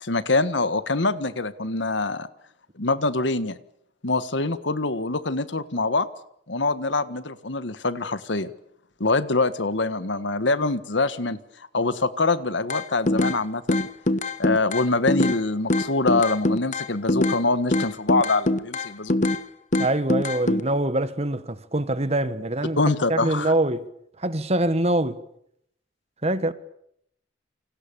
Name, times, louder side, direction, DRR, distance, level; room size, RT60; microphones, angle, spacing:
voice 1, 0.0-2.3 2.8-3.6 4.0-6.1 6.5-8.5 9.0-13.9 14.4-19.2 22.8-23.5, left 3 dB, 75° left, 1.5 m, -24 dB
sound 1, 12.7-13.4 13.7-15.4 15.7-17.4 17.7-19.4 19.7-20.6, left 2 dB, 40° left, 1.3 m, -23 dB
voice 2, 19.8-22.8 23.1-23.8 24.2-25.2 26.2-26.5, right 1 dB, 35° right, 1.6 m, -24 dB
29.0 x 26.0 x 7.1 m
head